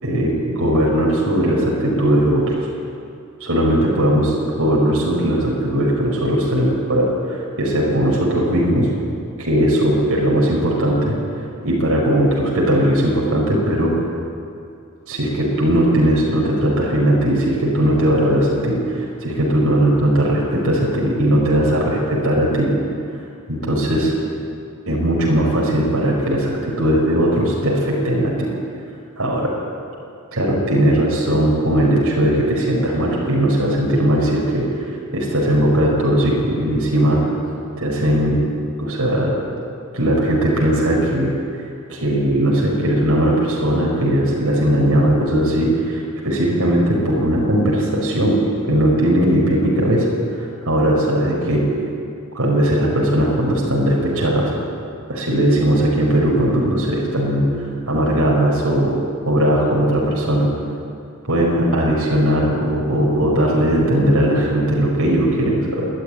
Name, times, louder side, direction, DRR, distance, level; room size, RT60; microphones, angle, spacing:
voice 1, 0.0-2.6 3.4-8.9 9.4-11.1 11.6-13.9 15.1-22.7 23.5-24.1 24.9-28.5 29.2-29.5 30.3-34.6 35.1-37.2 37.8-38.4 38.8-39.3 39.9-41.3 41.9-48.4 48.7-50.1 50.6-51.6 52.3-54.5 55.1-57.4 57.9-58.9 59.3-60.5 61.2-65.9, right 1 dB, 65° right, -3 dB, 5.0 m, -18 dB
26.0 x 11.0 x 9.9 m, 2.5 s
head